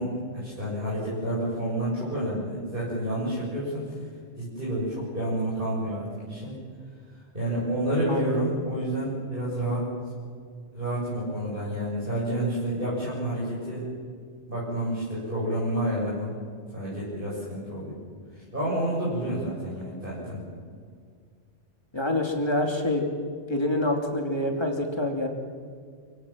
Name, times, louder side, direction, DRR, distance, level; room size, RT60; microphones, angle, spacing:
voice 1, 0.0-3.9 4.4-6.5 7.3-9.9 10.7-13.8 14.5-16.3 16.7-17.9 18.3-20.4, right 1 dB, 50° right, -8 dB, 7.7 m, -29 dB
voice 2, 21.9-23.1 23.5-25.3, left 1 dB, 25° left, 2 dB, 3.1 m, -26 dB
28.5 x 17.5 x 7.6 m, 2.1 s
omnidirectional pair, 1.2 m